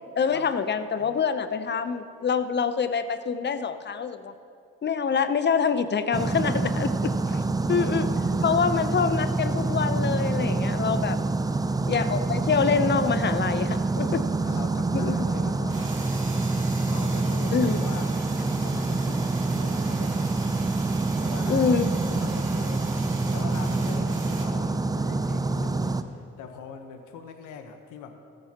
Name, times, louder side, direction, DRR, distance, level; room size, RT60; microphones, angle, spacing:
voice 1, 0.2-4.3 4.8-7.4 7.7-11.2 11.9-14.3 14.9-15.3 17.5-17.8 21.5-21.9, left 6 dB, 35° left, 11 dB, 0.7 m, -26 dB
sound 1, 6.1-26.0, right 3 dB, 15° right, 0.5 m, -26 dB
voice 2, 7.5-8.1 8.6-8.7 11.5-11.8 14.1-16.3 16.9-18.1 18.6-28.2, left 6 dB, 80° left, 7 dB, 1.1 m, -43 dB
sound 2, 15.4-24.5, right 3 dB, 40° right, 2.5 m, -42 dB
14.5 x 13.0 x 2.9 m, 2.5 s
supercardioid pair, 70°, 30 cm